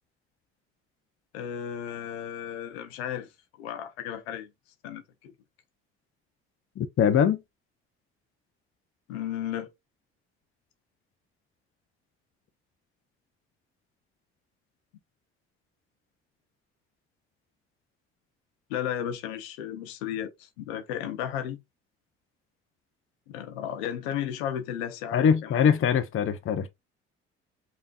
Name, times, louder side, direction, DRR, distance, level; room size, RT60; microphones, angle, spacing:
voice 1, 1.3-3.3 3.6-4.5 4.8-5.3 9.1-9.7 18.7-21.6 23.3-25.7, left 10 dB, 75° left, 1.0 m, -34 dB
voice 2, 6.8-7.4 25.1-26.7, left 7 dB, 40° left, 0.7 m, -23 dB
5.2 x 3.0 x 2.5 m
hypercardioid pair, 55°, 32 cm